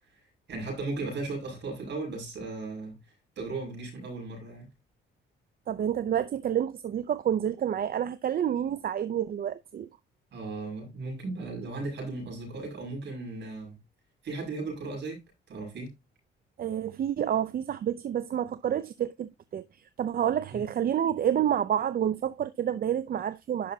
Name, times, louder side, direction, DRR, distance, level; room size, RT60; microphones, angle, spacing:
voice 1, 0.5-3.0 3.4-4.7 10.3-13.8 14.2-15.2 15.5-15.9 20.5-20.6, right 3 dB, 65° right, 6.0 m, -36 dB
voice 2, 5.7-9.9 16.6-23.7, right 10 dB, 50° right, 0.5 m, -29 dB
11.0 x 5.9 x 2.7 m
cardioid pair, 90°, 20 cm